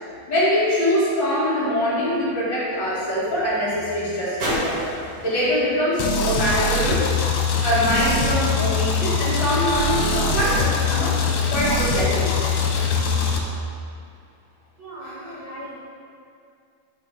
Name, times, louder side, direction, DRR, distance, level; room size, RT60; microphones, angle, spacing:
voice 1, 0.3-4.8 5.2-7.0 7.6-11.1 11.5-12.5 15.0-15.1, equal, 35° left, -10 dB, 2.1 m, -23 dB
sound 1, 0.9-7.4 8.2-8.3, equal, 40° right, 2.0 m, -35 dB
sound 2, 6.0-13.4, left 4 dB, 80° left, 3.2 m, -22 dB
voice 2, 14.8-15.8, right 1 dB, 75° right, -9 dB, 1.5 m, -37 dB
11.0 x 6.0 x 3.6 m, 2.4 s
omnidirectional pair, 5.2 m